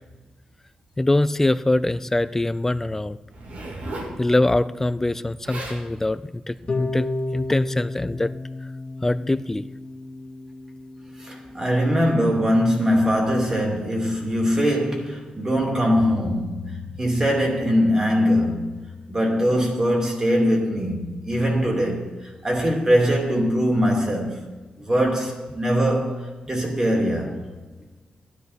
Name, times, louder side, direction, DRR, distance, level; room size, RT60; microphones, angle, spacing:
voice 1, 1.0-3.2 4.2-8.3 9.0-9.6, left 2 dB, 15° left, 0.4 m, -23 dB
Zipper (clothing), 3.3-4.2 5.2-5.3 5.4-5.8 6.5-6.8, right 1 dB, 70° right, 3.3 m, -35 dB
Harp, 6.7-12.7, left 2 dB, 35° left, 0.9 m, -33 dB
voice 2, 11.2-18.8 19.1-24.4 24.8-27.4, equal, 25° right, 2.6 m, -22 dB
15.0 x 10.5 x 4.2 m
wide cardioid pair, 120°, 3 cm